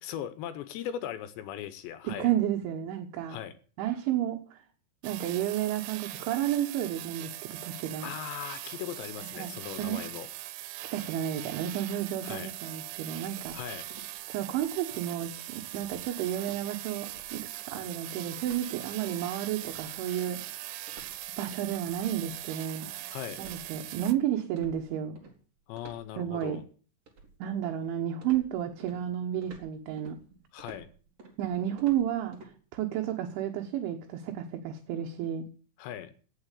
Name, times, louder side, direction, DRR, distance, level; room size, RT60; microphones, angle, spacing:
voice 1, 0.0-2.3 3.3-3.5 8.0-10.3 12.2-12.5 13.5-13.9 23.1-23.4 25.7-26.6 30.5-30.9 35.8-36.1, left 10 dB, 75° left, 12 dB, 2.8 m, -39 dB
voice 2, 2.1-3.4 3.8-4.6 5.0-8.1 9.2-10.0 10.8-13.6 14.3-20.8 21.4-23.0 23.4-25.2 26.2-26.6 27.4-30.2 31.4-35.5, right 11 dB, 75° right, 4 dB, 3.5 m, -32 dB
sound 1, 5.0-24.1, right 15 dB, 90° right, 3.7 m, -41 dB
sound 2, 13.4-14.2 14.5-14.8 15.1-15.4 15.7-16.1 16.4-16.7 17.1-17.4 17.7-18.7 19.0-19.2 19.6-24.2 24.6-25.3 25.8-26.6 27.1-27.9 28.2-32.5, right 3 dB, 35° right, 3.6 m, -51 dB
17.5 x 7.5 x 8.3 m, 0.41 s
omnidirectional pair, 5.8 m